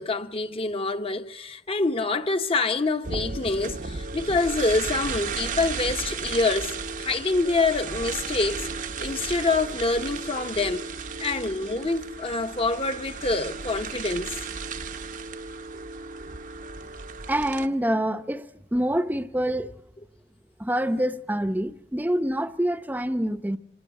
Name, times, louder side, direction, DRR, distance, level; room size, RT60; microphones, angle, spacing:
voice 1, 0.0-8.7 9.0-10.9 11.2-14.4, left 3 dB, 35° left, 1.0 m, -26 dB
sound 1, 3.0-17.7, right 4 dB, 45° right, 0.8 m, -34 dB
voice 2, 17.3-19.7 20.6-23.6, right 1 dB, 10° right, 0.8 m, -26 dB
25.5 x 19.5 x 8.3 m
head